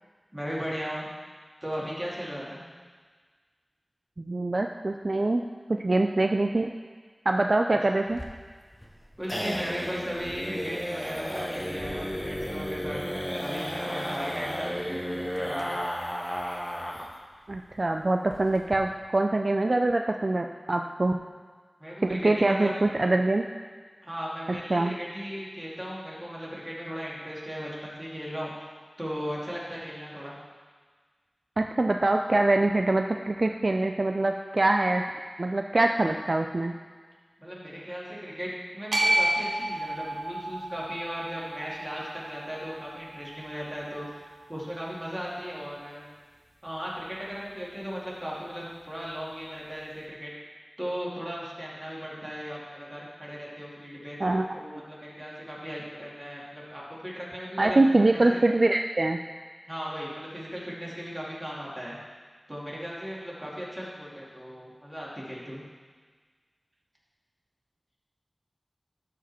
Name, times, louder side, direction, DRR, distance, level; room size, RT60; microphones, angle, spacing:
voice 1, 0.3-1.1 1.6-2.6 9.2-13.0 13.4-15.1 15.3-15.8 21.8-22.7 24.0-28.7 29.0-30.4 37.4-46.1 46.6-50.3 50.8-57.8 58.1-58.4 59.7-62.0 62.5-65.6, equal, 15° right, -6 dB, 2.4 m, -37 dB
voice 2, 4.2-5.4 5.8-6.7 7.3-8.2 17.5-21.2 22.0-23.4 24.7-24.9 31.6-35.0 35.4-36.7 54.2-54.4 57.6-59.2, right 2 dB, 55° right, 4 dB, 0.4 m, -24 dB
sound 1, 8.1-17.2 17.5-17.6 17.9-18.0 18.3-18.8, equal, 5° left, 1.1 m, -33 dB
sound 2, 38.9-45.1, right 1 dB, 80° right, 1.6 m, -32 dB
12.5 x 5.1 x 4.3 m, 1.5 s
wide cardioid pair, 65°, 0 cm